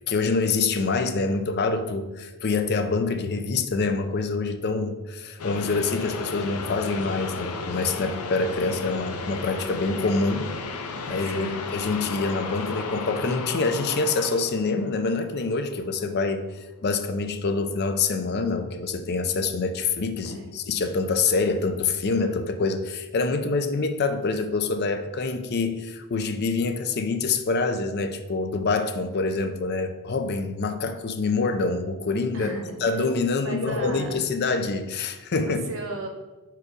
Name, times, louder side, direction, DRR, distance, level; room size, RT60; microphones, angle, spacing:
voice 1, 0.1-10.5 11.1-16.5 16.8-32.5 32.8-35.6, left 4 dB, 45° left, 8 dB, 0.5 m, -26 dB
sound 1, 5.4-15.6, left 4 dB, 85° left, 0.7 m, -34 dB
voice 2, 11.2-11.6 20.2-20.5 32.3-32.8 33.4-34.1 35.4-36.1, right 2 dB, 65° right, 3 dB, 1.1 m, -35 dB
4.7 x 4.7 x 5.0 m, 1.1 s
head